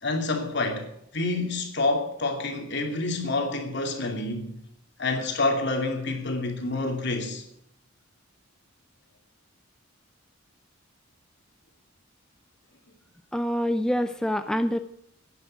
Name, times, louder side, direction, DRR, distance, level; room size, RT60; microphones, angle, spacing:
voice 1, 0.0-0.9 1.1-4.6 5.0-7.4, left 2 dB, 55° left, 2.7 m, -28 dB
voice 2, 13.3-14.8, equal, 5° left, 0.4 m, -26 dB
11.0 x 10.0 x 9.0 m
head